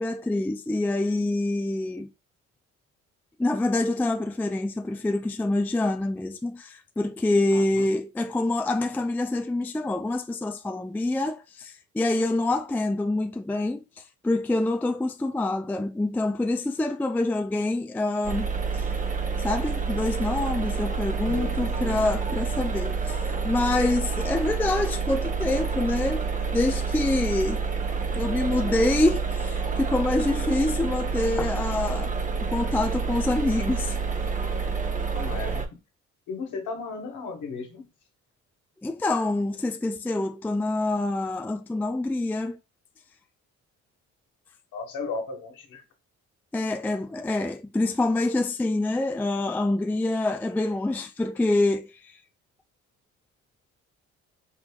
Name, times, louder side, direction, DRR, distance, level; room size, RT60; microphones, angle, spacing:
voice 1, 0.0-2.1 3.4-18.9 19.4-26.2 26.5-27.6 28.1-32.1 32.4-34.0 38.8-42.6 46.5-52.2, left 2 dB, 5° left, 0.3 m, -26 dB
voice 2, 7.5-7.8 21.3-22.0 35.1-35.6 36.3-37.8 44.7-45.8, left 4 dB, 75° left, 1.4 m, -35 dB
sound 1, 18.2-35.7, right 5 dB, 25° right, 0.9 m, -28 dB
5.3 x 3.4 x 2.3 m
cardioid pair, 90°, 30 cm